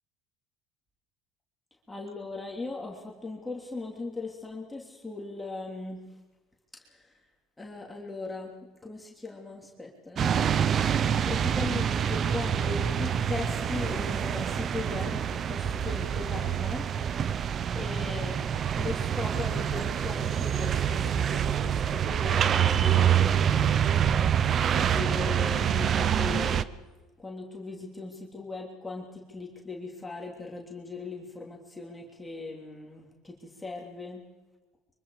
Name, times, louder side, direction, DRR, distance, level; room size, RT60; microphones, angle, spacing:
voice 1, 1.9-6.0 6.7-7.2 7.6-10.4 10.8-17.0 17.7-18.5 18.7-23.8 24.7-26.6 27.2-34.2, left 3 dB, 10° left, -1 dB, 3.2 m, -39 dB
sound 1, 10.2-26.6, right 8 dB, 40° right, 0.8 m, -26 dB
24.5 x 24.0 x 5.0 m, 1.1 s
supercardioid pair, 105°, 0 cm